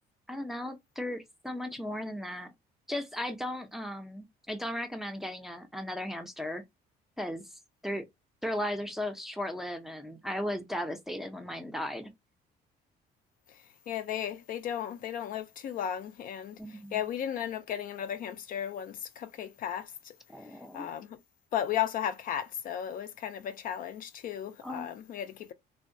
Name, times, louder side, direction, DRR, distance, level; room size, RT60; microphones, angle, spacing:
voice 1, 0.3-2.5 2.9-6.6 7.2-7.5 7.8-8.0 8.4-12.1 16.6-17.0 20.3-20.9 24.6-24.9, left 1 dB, ahead, 0.5 m, -36 dB
voice 2, 13.9-16.6 16.9-20.1 20.7-21.2 21.5-25.5, left 10 dB, 55° left, 0.4 m, -35 dB
2.7 x 2.1 x 2.5 m
cardioid pair, 110°, 17 cm